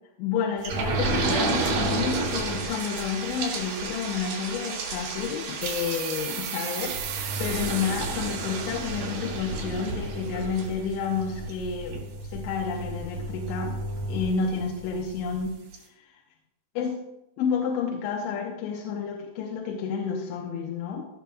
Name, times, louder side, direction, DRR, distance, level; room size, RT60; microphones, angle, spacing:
voice 1, 0.2-12.0 12.3-13.8 14.1-15.6 16.8-17.0 17.4-21.1, left 6 dB, 85° left, 0 dB, 3.1 m, -30 dB
sound 1, 0.6-14.9 15.4-15.5 15.7-15.8, right 2 dB, 50° right, 4.4 m, -31 dB
sound 2, 5.6-10.8, right 11 dB, 80° right, 2.6 m, -38 dB
17.0 x 6.9 x 2.3 m, 0.93 s
omnidirectional pair, 5.4 m